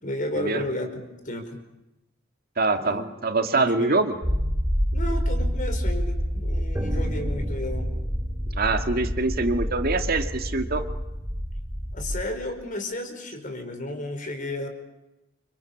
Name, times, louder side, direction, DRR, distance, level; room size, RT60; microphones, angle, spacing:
voice 1, 0.0-1.6 2.8-3.1 3.5-4.0 4.9-7.9 11.9-14.7, left 1 dB, 40° left, 7 dB, 4.9 m, -33 dB
voice 2, 2.6-4.1 8.5-10.8, right 3 dB, 50° right, 7 dB, 2.2 m, -24 dB
sound 1, 4.2-12.2, equal, 15° right, 2.8 m, -27 dB
29.0 x 25.5 x 7.3 m, 0.94 s
head